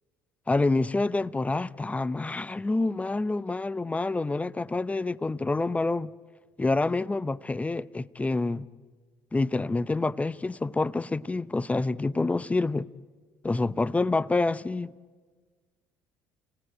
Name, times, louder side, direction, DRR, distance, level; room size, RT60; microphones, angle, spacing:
voice 1, 0.5-6.1 6.6-8.7 9.3-12.9 13.4-14.9, left 3 dB, 15° left, 0.7 m, -27 dB
30.0 x 18.5 x 9.1 m
hypercardioid pair, 55°, 8 cm